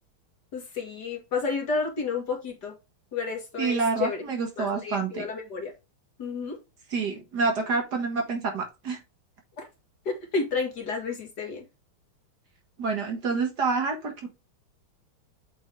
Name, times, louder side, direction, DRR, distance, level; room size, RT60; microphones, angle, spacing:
voice 1, 0.5-2.7 3.1-4.2 4.6-5.7 6.2-6.6 9.6-9.7 10.1-11.6, left 4 dB, 50° left, 3 dB, 2.2 m, -31 dB
voice 2, 3.6-5.3 6.9-9.0 12.8-14.3, right 4 dB, 50° right, 3 dB, 2.0 m, -27 dB
8.0 x 4.3 x 3.4 m, 0.25 s
omnidirectional pair, 2.3 m